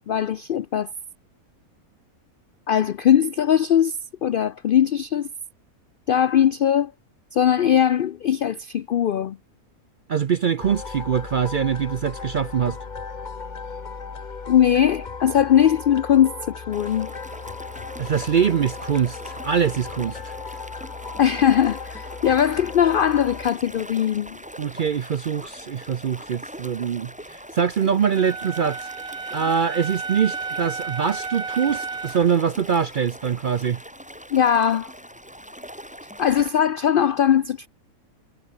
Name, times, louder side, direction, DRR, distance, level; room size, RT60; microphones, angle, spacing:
voice 1, 0.1-0.9 2.7-4.0 4.2-5.3 6.1-6.9 7.3-9.4 14.5-17.1 21.2-24.4 34.3-34.9 36.2-37.7, left 9 dB, 80° left, 0.4 m, -20 dB
voice 2, 10.1-12.8 18.0-20.3 24.6-28.9 29.3-33.8, right 7 dB, 55° right, 0.5 m, -23 dB
sound 1, 10.6-23.5, left 5 dB, 35° left, 1.3 m, -36 dB
sound 2, 16.7-36.5, equal, 5° right, 7.6 m, -42 dB
Wind instrument woodwind instrument, 28.2-32.3, right 4 dB, 75° right, 2.9 m, -32 dB
omnidirectional pair, 1.5 m